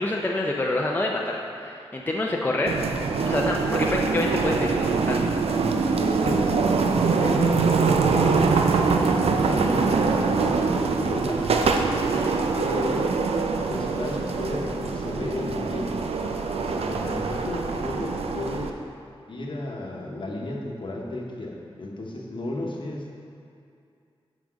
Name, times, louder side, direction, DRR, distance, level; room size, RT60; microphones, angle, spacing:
voice 1, 0.0-2.7 3.3-5.2 12.1-12.3, left 2 dB, 20° left, -1 dB, 0.5 m, -27 dB
sound 1, 2.7-18.7, right 4 dB, 85° right, 0.5 m, -24 dB
voice 2, 6.0-6.9 7.2-11.5 12.5-13.2 13.7-16.1 16.5-18.8 19.3-23.2, left 2 dB, 55° left, -1 dB, 1.0 m, -33 dB
5.9 x 5.1 x 6.2 m, 2.5 s
wide cardioid pair, 105°, 10 cm